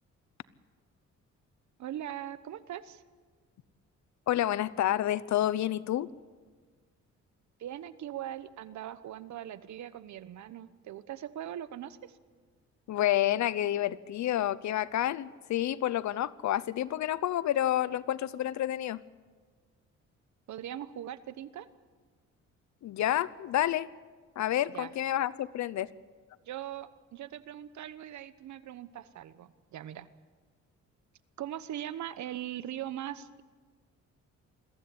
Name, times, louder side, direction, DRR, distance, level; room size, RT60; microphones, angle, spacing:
voice 1, 1.8-3.0 7.6-12.1 20.5-21.7 24.7-24.9 26.4-30.1 31.4-33.4, right 11 dB, 70° right, 14 dB, 1.1 m, -40 dB
voice 2, 4.3-6.1 12.9-19.0 22.8-23.9 24.4-25.9, left 12 dB, 65° left, 18 dB, 0.8 m, -29 dB
22.0 x 15.5 x 8.6 m, 1.5 s
cardioid pair, 90°, 30 cm